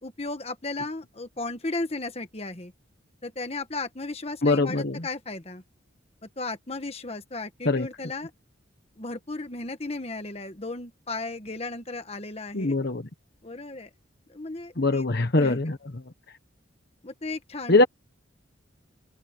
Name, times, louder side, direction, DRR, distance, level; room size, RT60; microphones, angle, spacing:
voice 1, 0.0-2.7 3.2-5.6 6.2-8.3 9.0-12.8 13.4-13.9 14.3-15.1 15.4-15.6 17.0-17.8, left 2 dB, 30° left, 1.4 m, -35 dB
voice 2, 4.4-5.0 7.6-7.9 12.5-13.0 14.8-15.8 17.7-17.8, left 2 dB, 50° left, 1.2 m, -22 dB
open air
head